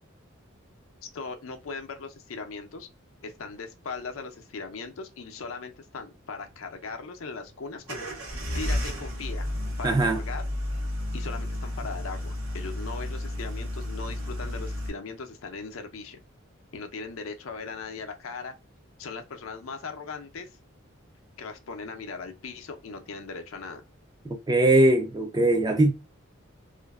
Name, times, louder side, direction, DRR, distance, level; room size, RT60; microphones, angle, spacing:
voice 1, 1.0-2.9 3.2-8.1 8.5-9.5 9.8-10.4 11.1-16.2 16.7-18.5 19.0-20.5 21.4-23.8, left 4 dB, 80° left, 0.5 m, -39 dB
sound 1, 7.9-14.9, left 1 dB, 80° right, 0.8 m, -32 dB
voice 2, 9.8-10.2 24.2-25.9, right 1 dB, 20° right, 0.3 m, -21 dB
2.5 x 2.2 x 2.3 m
head